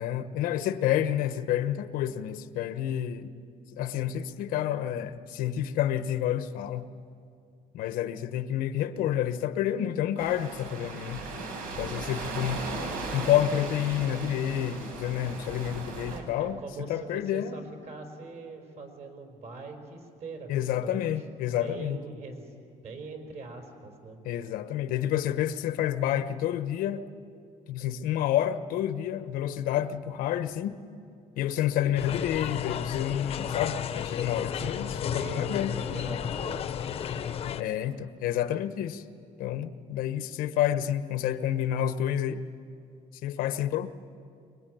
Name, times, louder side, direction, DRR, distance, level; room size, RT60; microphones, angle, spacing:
voice 1, 0.0-3.3 3.7-6.9 7.7-11.2 11.8-12.6 13.1-16.6 16.9-17.6 20.5-22.0 24.2-27.0 27.7-30.8 31.4-35.7 37.6-39.0 39.4-42.4 43.2-43.9, left 11 dB, 85° left, 1.1 m, -29 dB
sound 1, 10.2-16.2, right 3 dB, 90° right, 4.6 m, -37 dB
voice 2, 16.1-22.6 22.8-24.2 34.3-37.3, right 4 dB, 50° right, 4.6 m, -43 dB
sound 2, 32.0-37.6, left 9 dB, 45° left, 0.9 m, -33 dB
24.5 x 22.0 x 9.3 m
cardioid pair, 150°, 14 cm